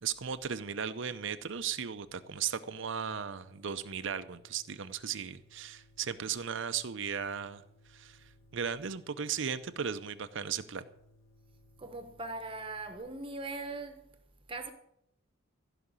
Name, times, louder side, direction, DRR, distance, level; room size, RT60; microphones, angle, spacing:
voice 1, 0.0-7.6 7.9-8.2 8.5-10.9, right 7 dB, 60° right, 0.6 m, -36 dB
sound 1, 1.5-13.0, left 1 dB, 75° left, 3.1 m, -63 dB
voice 2, 11.8-14.0 14.5-14.7, right 3 dB, 25° right, 1.1 m, -40 dB
15.0 x 5.9 x 8.8 m
head